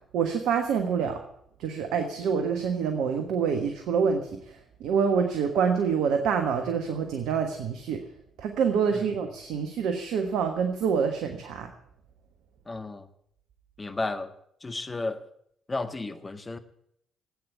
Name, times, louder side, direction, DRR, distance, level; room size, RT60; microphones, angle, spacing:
voice 1, 0.1-1.2 1.6-8.0 8.4-11.7, right 6 dB, 70° right, 5 dB, 1.4 m, -26 dB
voice 2, 12.7-13.1 13.8-14.3 14.6-15.2 15.7-16.6, left 3 dB, 25° left, 8 dB, 1.6 m, -33 dB
14.5 x 9.0 x 8.6 m, 0.69 s
hypercardioid pair, 45°, 0 cm